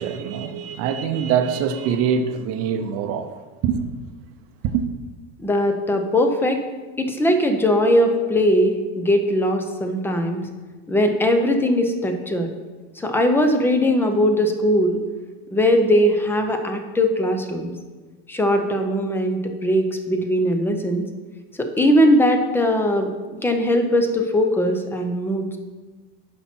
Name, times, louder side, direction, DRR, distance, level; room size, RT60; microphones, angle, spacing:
voice 1, 0.0-3.3 3.6-3.8 4.7-4.9, right 7 dB, 40° right, 0.7 m, -23 dB
voice 2, 5.4-6.6 7.0-10.4 10.9-12.5 13.0-15.0 15.5-17.7 18.3-21.0 21.6-23.1 23.4-25.6, equal, 5° left, 0.5 m, -20 dB
9.9 x 5.9 x 4.4 m
supercardioid pair, 150°, 36 cm